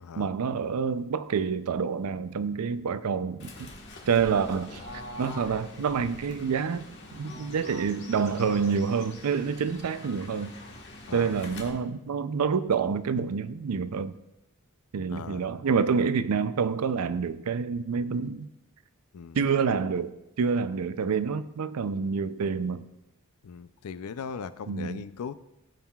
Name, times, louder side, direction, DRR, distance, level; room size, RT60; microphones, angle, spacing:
voice 1, 0.2-3.7 4.1-4.8 5.2-6.9 7.1-10.5 11.1-14.2 14.9-18.5 19.3-22.8 24.7-25.0, right 6 dB, 90° right, 0.5 m, -27 dB
Fowl / Bird, 3.4-11.7, left 1 dB, 55° left, 1.4 m, -44 dB
voice 2, 11.1-11.4 15.1-15.6 19.1-19.4 23.4-25.3, left 6 dB, 80° left, 0.4 m, -39 dB
16.5 x 5.6 x 2.3 m
head